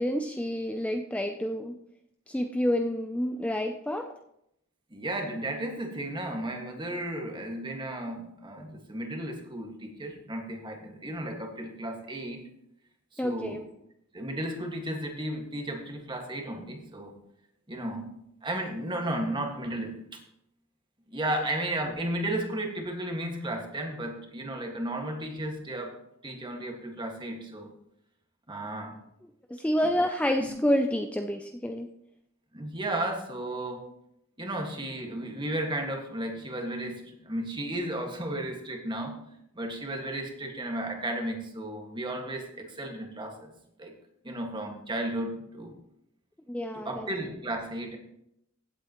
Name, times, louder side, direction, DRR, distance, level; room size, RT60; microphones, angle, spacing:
voice 1, 0.0-1.8 2.3-4.1 13.2-13.6 29.5-31.9 46.5-47.1, equal, 5° left, 5 dB, 0.4 m, -28 dB
voice 2, 4.9-12.5 13.1-13.6 14.1-17.2 17.7-20.0 21.1-25.9 26.2-27.7 28.5-29.0 30.4-30.5 32.5-33.9 34.4-39.2 39.5-43.5 43.8-43.9 44.2-45.7 46.7-48.0, right 1 dB, 25° right, 2 dB, 1.7 m, -34 dB
16.0 x 8.2 x 3.0 m, 0.79 s
head